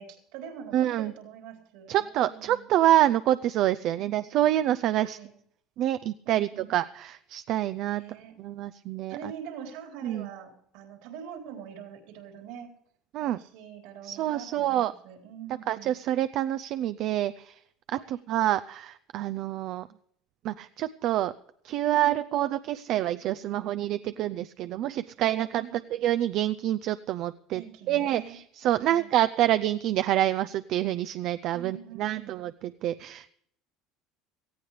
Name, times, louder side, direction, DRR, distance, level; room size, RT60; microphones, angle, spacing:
voice 1, 0.0-2.7 4.0-4.3 5.0-5.3 6.2-6.7 7.9-8.4 9.1-12.7 13.2-16.0 17.9-18.1 25.6-25.8 27.5-28.4 28.7-29.1 31.5-32.4, right 8 dB, 80° right, 3 dB, 4.0 m, -44 dB
voice 2, 0.7-1.1 1.9-5.2 5.8-8.0 8.4-9.2 10.0-10.3 13.1-13.4 14.0-14.9 15.7-17.6 17.9-19.9 20.4-21.3 21.6-25.6 25.9-27.6 27.9-33.3, right 13 dB, 60° right, 13 dB, 0.5 m, -27 dB
18.0 x 14.5 x 3.3 m, 0.68 s
supercardioid pair, 105°, 0 cm